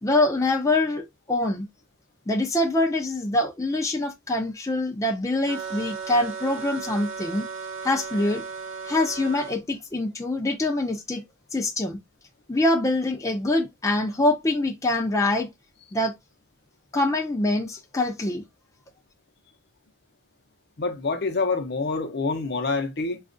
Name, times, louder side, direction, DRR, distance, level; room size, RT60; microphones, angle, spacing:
voice 1, 0.0-1.7 2.3-7.5 7.8-8.4 8.8-11.2 11.5-12.0 12.5-15.5 15.9-16.1 16.9-18.4, left 2 dB, 15° left, 0.4 m, -24 dB
sound 1, 5.5-9.6, right 5 dB, 75° right, 0.7 m, -35 dB
voice 2, 20.8-23.2, left 3 dB, 50° left, 0.7 m, -26 dB
5.0 x 2.3 x 2.5 m
head